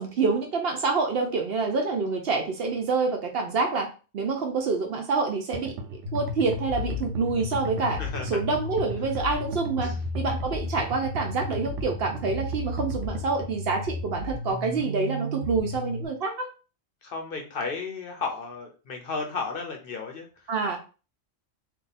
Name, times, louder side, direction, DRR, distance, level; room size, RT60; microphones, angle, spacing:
voice 1, 0.0-3.9 4.1-16.5 20.5-20.8, right 4 dB, 60° right, 3 dB, 0.8 m, -27 dB
sound 1, 5.5-13.5, right 2 dB, 90° right, 0.9 m, -37 dB
sound 2, 6.1-16.1, left 2 dB, 80° left, 0.9 m, -34 dB
voice 2, 17.0-20.3, left 4 dB, 55° left, 3 dB, 0.7 m, -33 dB
2.7 x 2.4 x 4.0 m, 0.34 s
omnidirectional pair, 1.2 m